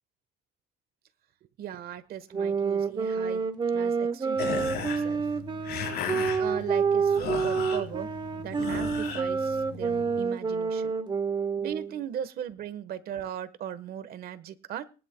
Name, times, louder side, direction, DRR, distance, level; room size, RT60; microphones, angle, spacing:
voice 1, 1.6-3.4 3.7-5.3 6.4-10.9 11.6-14.8, right 10 dB, 65° right, 13 dB, 1.3 m, -38 dB
sound 1, 2.3-12.0, right 5 dB, 25° right, 0.9 m, -28 dB
sound 2, 4.3-10.2, left 7 dB, 70° left, 4.4 m, -36 dB
21.0 x 11.0 x 2.3 m, 0.35 s
cardioid pair, 110°, 17 cm